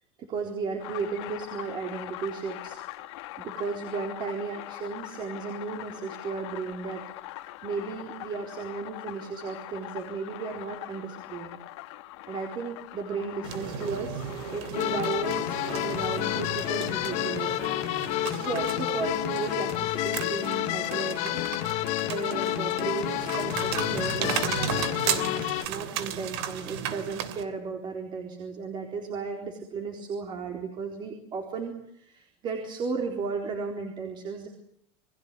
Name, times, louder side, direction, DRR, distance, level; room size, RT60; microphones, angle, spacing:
voice 1, 0.2-2.8 3.4-7.0 7.6-11.6 12.3-14.2 14.5-17.5 18.2-21.4 22.0-34.5, right 5 dB, 30° right, 3 dB, 4.2 m, -34 dB
sound 1, 0.8-17.3, left 17 dB, 70° left, 2.2 m, -43 dB
sound 2, 13.4-27.4, right 9 dB, 70° right, 3.2 m, -35 dB
sound 3, 14.7-25.7, left 16 dB, 50° left, 1.9 m, -29 dB
29.5 x 21.5 x 8.4 m, 0.70 s
supercardioid pair, 150°, 15 cm